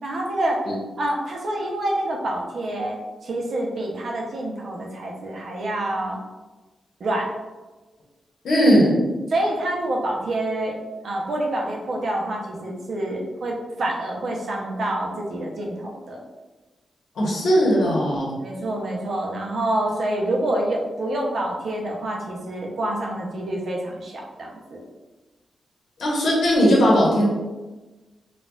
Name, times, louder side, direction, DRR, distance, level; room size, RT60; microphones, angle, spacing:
voice 1, 0.0-0.6 1.0-6.2 7.0-7.3 9.3-10.8 11.0-16.2 18.4-24.8, right 1 dB, 60° right, -1 dB, 0.6 m, -27 dB
voice 2, 8.4-9.0 17.1-18.3 26.0-27.3, equal, 90° left, -4 dB, 1.1 m, -18 dB
4.2 x 2.3 x 2.3 m, 1.2 s
wide cardioid pair, 160°, 0 cm